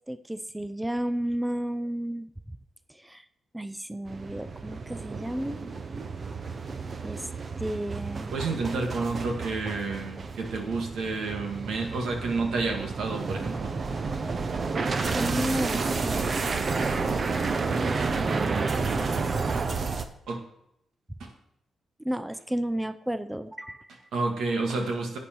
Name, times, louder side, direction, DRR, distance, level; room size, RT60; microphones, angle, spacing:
voice 1, 0.1-2.3 2.9-3.2 3.5-5.6 7.0-7.3 7.6-8.3 15.1-16.3 18.2-19.1 22.0-23.9, right 1 dB, 5° right, 12 dB, 0.5 m, -32 dB
sound 1, 4.1-20.0, right 4 dB, 50° right, 0.9 m, -30 dB
voice 2, 8.3-13.7 16.9-17.1 20.3-20.4 21.2-21.3 24.1-25.2, right 3 dB, 85° right, 2 dB, 1.9 m, -30 dB
10.5 x 8.6 x 4.6 m, 0.78 s
cardioid pair, 80°, 0 cm